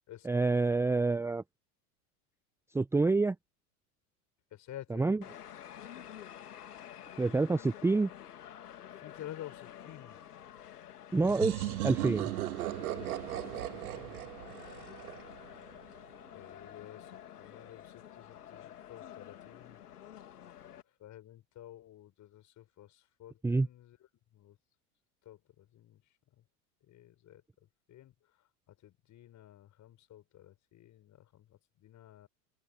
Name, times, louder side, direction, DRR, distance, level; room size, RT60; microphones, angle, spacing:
voice 1, 0.2-1.4 2.7-3.4 4.9-5.2 7.2-8.1 11.1-12.3 23.4-23.7, right 3 dB, 5° right, 0.6 m, -27 dB
voice 2, 4.5-5.0 8.9-10.2 13.3-14.2 16.3-19.8 21.0-24.0 24.3-24.6 25.2-26.0 26.9-27.4 27.9-28.1 28.8-32.3, left 12 dB, 40° left, 6.6 m, -51 dB
sound 1, 5.2-20.8, left 10 dB, 85° left, 2.3 m, -49 dB
sound 2, 11.2-15.8, right 16 dB, 70° right, 1.6 m, -37 dB
hypercardioid pair, 90°, 45 cm